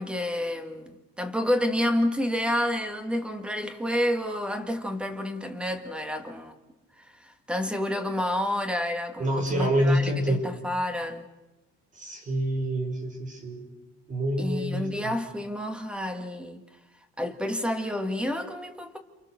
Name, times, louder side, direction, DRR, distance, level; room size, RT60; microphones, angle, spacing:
voice 1, 0.0-6.5 7.2-11.3 14.4-16.6 17.2-19.0, left 1 dB, 5° right, 1.9 m, -29 dB
voice 2, 9.2-10.4 12.0-13.6 14.1-14.9, equal, 25° right, 6.3 m, -26 dB
29.5 x 28.0 x 6.7 m
cardioid pair, 155°, 29 cm